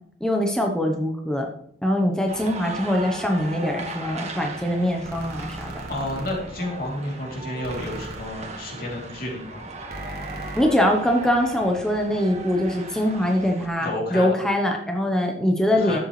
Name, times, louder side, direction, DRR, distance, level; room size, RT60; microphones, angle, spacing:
voice 1, 0.2-1.5 1.8-5.8 10.6-16.0, left 1 dB, 5° left, 1 dB, 0.9 m, -23 dB
sound 1, 2.3-13.7, right 2 dB, 40° right, 1.6 m, -37 dB
sound 2, 5.0-6.3 7.6-8.2 9.9-10.6, right 1 dB, 60° right, 1.6 m, -37 dB
voice 2, 5.9-9.6 13.8-14.3 15.7-16.0, left 1 dB, 55° left, -2 dB, 3.1 m, -31 dB
12.0 x 7.9 x 3.2 m, 0.70 s
head